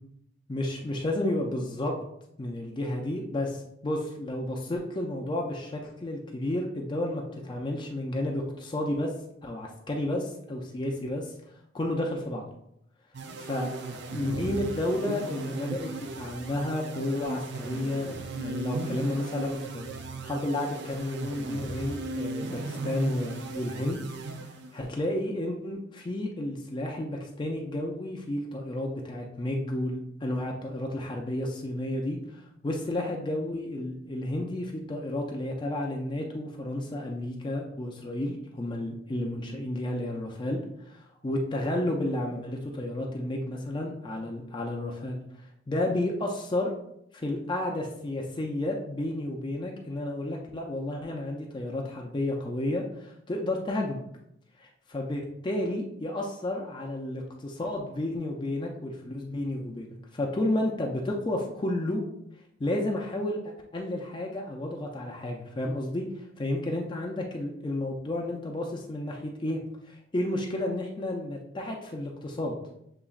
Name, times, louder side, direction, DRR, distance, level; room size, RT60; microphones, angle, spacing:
voice 1, 0.5-1.9 2.4-9.1 9.4-11.3 11.7-12.5 13.4-13.7 14.1-19.9 20.2-24.0 24.4-45.2 45.7-46.7 47.1-54.0 54.6-59.9 60.1-62.0 62.6-69.6 69.8-72.5, left 1 dB, 25° left, 0 dB, 0.4 m, -31 dB
sound 1, 13.1-24.9, right 3 dB, 65° right, 0.4 m, -37 dB
6.9 x 2.9 x 2.4 m, 0.77 s
head